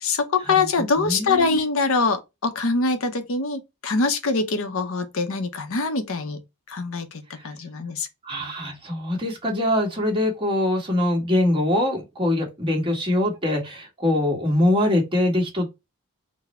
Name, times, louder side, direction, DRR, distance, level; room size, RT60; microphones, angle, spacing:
voice 1, 0.0-6.4 6.7-8.1, left 4 dB, 65° left, 0.7 m, -24 dB
voice 2, 1.0-1.6 7.4-7.5 8.2-15.7, left 1 dB, 25° right, 1.3 m, -23 dB
4.0 x 2.1 x 4.2 m
head